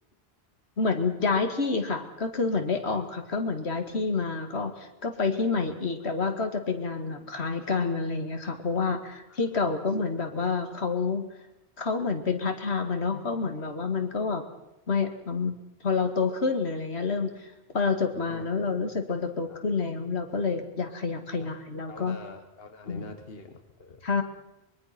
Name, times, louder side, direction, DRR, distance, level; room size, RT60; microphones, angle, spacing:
voice 1, 0.8-11.3 11.8-14.4 14.9-15.6 15.8-22.2 22.9-23.0 24.0-24.2, left 4 dB, 80° left, 6 dB, 2.2 m, -28 dB
voice 2, 9.1-9.5 13.5-13.6 14.1-14.2 18.1-18.4 19.5-19.6 21.3-21.5 21.9-24.0, left 3 dB, 65° left, 6 dB, 1.8 m, -45 dB
24.0 x 22.0 x 6.0 m, 0.90 s
omnidirectional pair, 1.1 m